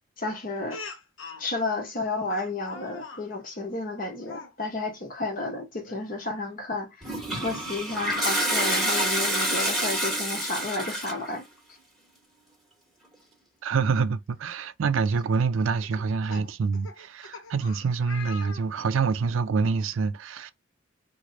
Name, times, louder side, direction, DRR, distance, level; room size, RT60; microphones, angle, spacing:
voice 1, 0.2-0.8 1.4-11.4, left 3 dB, 45° left, 1.0 m, -32 dB
Speech, 0.7-1.5 2.3-3.3 4.2-4.5 5.8-6.0 6.5-6.6 8.2-8.3 9.1-10.0 11.3-11.4 11.7-11.8 13.7-13.8 14.5-14.7 15.8-19.1, left 4 dB, 85° left, 0.8 m, -43 dB
Toilet flush, 7.0-11.3, right 1 dB, ahead, 1.1 m, -27 dB
voice 2, 13.6-20.5, right 5 dB, 80° right, 0.4 m, -26 dB
3.1 x 2.1 x 3.8 m
head